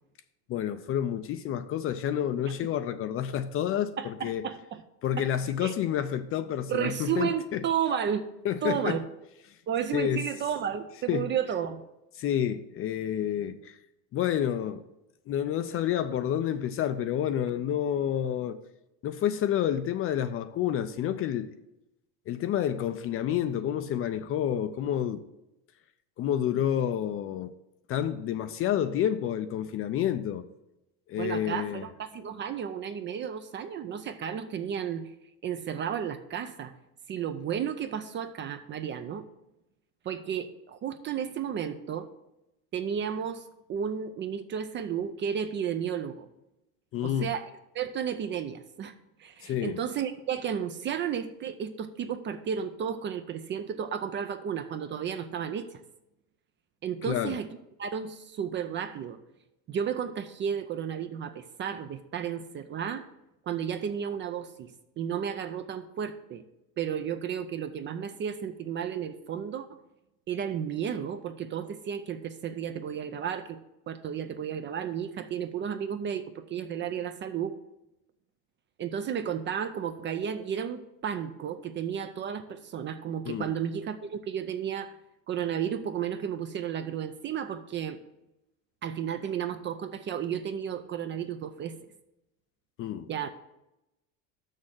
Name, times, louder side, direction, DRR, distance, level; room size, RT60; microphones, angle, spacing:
voice 1, 0.5-4.4 5.0-7.6 8.4-9.0 9.9-10.2 11.1-11.3 12.2-13.8 14.1-14.8 15.3-18.6 19.0-21.5 22.3-25.2 26.2-27.5 27.9-30.4 31.1-31.9 46.9-47.3 49.4-49.8 57.1-57.4 83.3-83.5 92.8-93.1, left 10 dB, 35° left, 0.4 m, -29 dB
voice 2, 4.0-4.8 5.2-5.3 5.6-5.7 6.7-8.3 8.6-9.1 9.7-11.8 31.2-35.1 35.4-36.7 37.1-39.2 40.0-42.1 42.7-46.3 47.0-47.5 47.7-48.9 49.2-55.8 56.8-57.5 57.8-59.2 59.7-63.1 63.5-66.4 66.8-69.8 70.3-73.6 73.9-77.6 78.8-85.0 85.3-88.0 88.8-91.8 93.1-93.3, right 8 dB, 30° right, 0.4 m, -33 dB
6.5 x 6.3 x 7.2 m
supercardioid pair, 130°, 42 cm